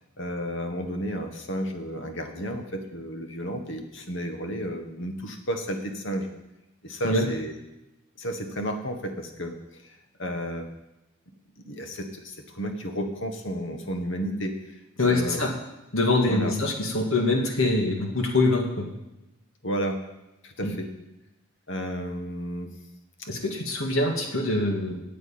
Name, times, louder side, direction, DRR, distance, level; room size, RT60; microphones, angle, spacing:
voice 1, 0.2-6.3 6.8-7.5 8.2-10.7 11.6-14.8 15.1-15.5 16.2-16.5 19.6-20.0 20.4-20.9 21.7-22.7 23.2-23.3, equal, 60° left, 5 dB, 1.5 m, -32 dB
voice 2, 15.0-15.5 15.9-18.9 20.6-20.7 23.3-24.9, left 2 dB, 75° left, 2 dB, 2.0 m, -24 dB
9.1 x 8.4 x 8.7 m, 0.98 s
head